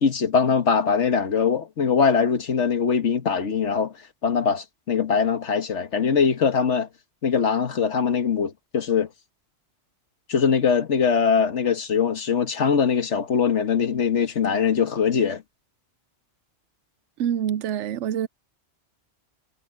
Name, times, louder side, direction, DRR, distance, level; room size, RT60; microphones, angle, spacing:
voice 1, 0.0-3.9 4.2-6.9 7.2-9.1 10.3-15.4, left 6 dB, 80° left, 1.7 m, -22 dB
voice 2, 17.2-18.3, right 9 dB, 90° right, 0.9 m, -26 dB
omnidirectional pair, 1.2 m